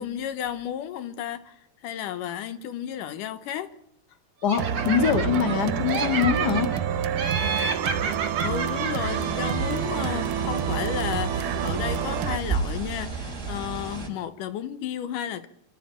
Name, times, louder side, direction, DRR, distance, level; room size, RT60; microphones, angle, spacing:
voice 1, 0.0-3.7 8.4-15.5, left 10 dB, 85° left, 2.6 m, -33 dB
voice 2, 4.4-6.7, left 7 dB, 35° left, 2.2 m, -23 dB
Laughter, 4.5-5.6 5.9-6.8 7.2-9.9, right 5 dB, 60° right, 3.8 m, -30 dB
sound 1, 4.6-12.4, right 8 dB, 80° right, 2.5 m, -28 dB
sound 2, 9.1-14.1, right 4 dB, 20° right, 4.2 m, -33 dB
26.5 x 13.0 x 8.7 m
omnidirectional pair, 3.7 m